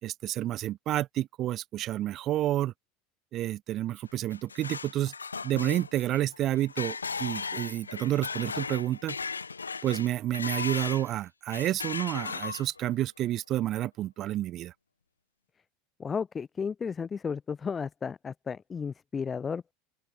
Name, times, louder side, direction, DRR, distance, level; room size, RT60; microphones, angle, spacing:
voice 1, 0.0-2.7 3.3-5.1 5.4-9.2 9.8-14.7, right 13 dB, 45° right, 5.2 m, -30 dB
sound 1, 4.1-11.1 11.5-12.9, left 5 dB, 90° left, 6.0 m, -37 dB
voice 2, 16.0-19.7, left 6 dB, 25° left, 3.9 m, -33 dB
open air
hypercardioid pair, 80°, 0 cm